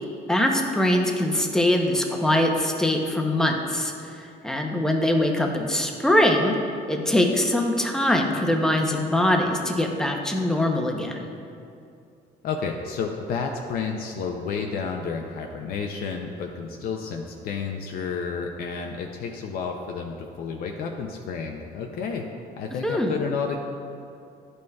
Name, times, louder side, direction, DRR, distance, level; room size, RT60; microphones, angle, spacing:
voice 1, 0.3-6.5 6.9-11.3 22.8-23.2, left 1 dB, 5° left, 2 dB, 0.7 m, -23 dB
voice 2, 12.4-22.3 22.6-23.6, left 5 dB, 65° left, 2 dB, 0.5 m, -31 dB
11.0 x 5.3 x 2.3 m, 2.5 s
cardioid pair, 110°, 17 cm